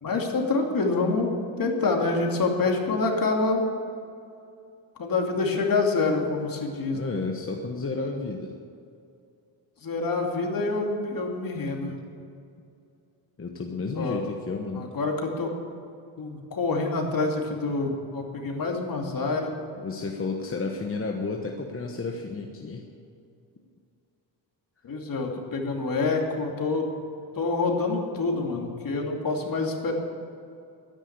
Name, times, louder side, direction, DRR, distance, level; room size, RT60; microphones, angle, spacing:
voice 1, 0.0-1.3 1.6-3.7 5.0-7.2 9.8-11.9 13.9-14.2 14.7-15.5 16.2-19.5 24.8-26.9 27.4-29.9, left 3 dB, 45° left, 1 dB, 2.6 m, -26 dB
voice 2, 6.9-8.5 13.4-14.9 19.8-22.8, left 3 dB, 30° left, 2 dB, 1.2 m, -32 dB
12.5 x 10.0 x 8.0 m, 2.5 s
cardioid pair, 110°, 45 cm